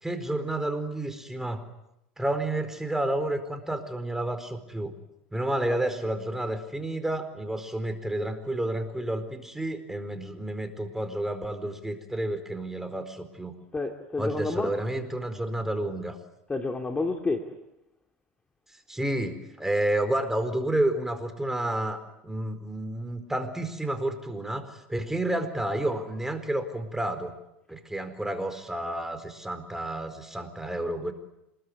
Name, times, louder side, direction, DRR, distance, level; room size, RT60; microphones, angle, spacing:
voice 1, 0.0-1.6 2.2-4.9 5.3-13.6 14.2-16.2 18.9-27.3 27.7-31.1, right 1 dB, 5° right, 4.4 m, -30 dB
voice 2, 13.7-14.7 16.5-17.5, left 3 dB, 15° left, 2.7 m, -30 dB
27.0 x 21.0 x 9.8 m
hypercardioid pair, 95°, 6 cm